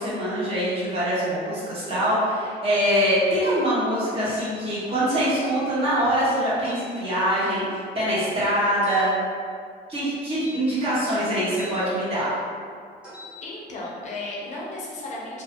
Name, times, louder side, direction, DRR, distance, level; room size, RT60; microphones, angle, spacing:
voice 1, 0.0-9.1 9.9-12.3, equal, 35° right, -10 dB, 1.2 m, -24 dB
sound 1, 4.3-4.6 6.6-6.9 8.8-9.1 10.4-11.8 13.0-13.4, left 2 dB, 5° right, 1.1 m, -42 dB
voice 2, 13.4-15.4, left 2 dB, 45° left, -4 dB, 0.5 m, -34 dB
2.4 x 2.3 x 2.7 m, 2.1 s
cardioid pair, 110°, 17 cm